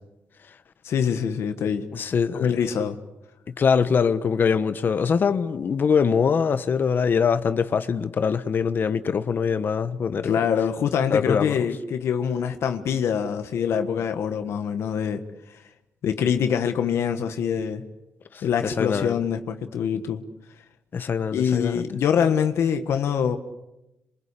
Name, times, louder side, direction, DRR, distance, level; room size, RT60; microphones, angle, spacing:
voice 1, 0.8-1.9 2.3-3.0 10.2-15.6 16.0-17.8 18.4-20.2 21.3-23.4, left 7 dB, 75° left, 1.5 m, -24 dB
voice 2, 1.9-2.5 3.6-10.4 11.1-11.7 18.3-19.2 20.9-21.8, left 6 dB, 50° left, 1.2 m, -23 dB
27.5 x 24.5 x 8.4 m
cardioid pair, 115°, 4 cm